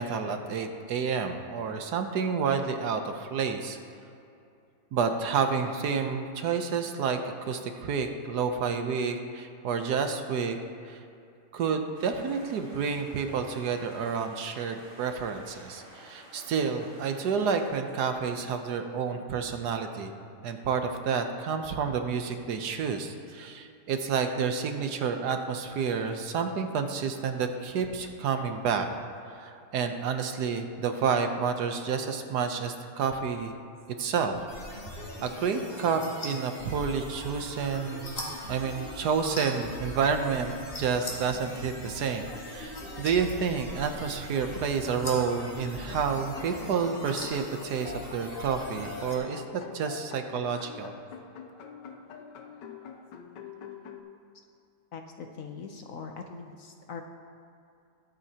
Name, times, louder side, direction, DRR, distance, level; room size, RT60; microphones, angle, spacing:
voice 1, 0.0-3.8 4.9-10.6 10.8-11.0 11.5-20.1 20.4-28.9 29.3-33.6 34.0-34.5 35.2-38.2 38.5-50.9, right 6 dB, 70° right, 6 dB, 1.3 m, -29 dB
sound 1, 11.9-17.7, right 1 dB, 85° right, 3.7 m, -51 dB
sound 2, 34.5-49.2, left 1 dB, 35° left, 2.1 m, -40 dB
sound 3, 45.9-54.0, left 7 dB, 85° left, 1.5 m, -45 dB
voice 2, 54.9-57.0, left 5 dB, 60° left, 4 dB, 0.9 m, -41 dB
21.5 x 8.0 x 2.9 m, 2.6 s
omnidirectional pair, 1.9 m